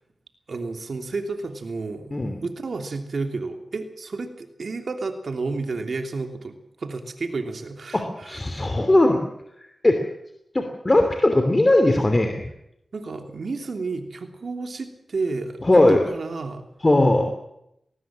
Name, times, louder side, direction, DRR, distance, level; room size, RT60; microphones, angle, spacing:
voice 1, 0.5-2.1 2.4-8.4 12.9-16.7, right 3 dB, 70° right, 6 dB, 3.0 m, -31 dB
voice 2, 7.9-9.2 9.8-10.0 10.5-12.5 15.6-16.0 16.8-17.3, left 1 dB, 30° left, 5 dB, 2.9 m, -19 dB
19.5 x 19.0 x 7.6 m, 0.80 s
cardioid pair, 65°, 0 cm